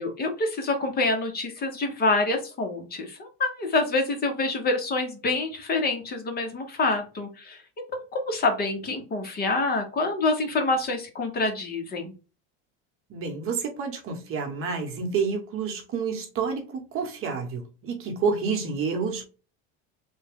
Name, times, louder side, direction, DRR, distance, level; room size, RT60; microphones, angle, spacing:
voice 1, 0.0-7.6 7.9-12.1, left 3 dB, 30° left, 0.9 m, -26 dB
voice 2, 13.1-19.3, right 5 dB, 45° right, 1.0 m, -29 dB
3.4 x 2.2 x 3.5 m
cardioid pair, 135°, 31 cm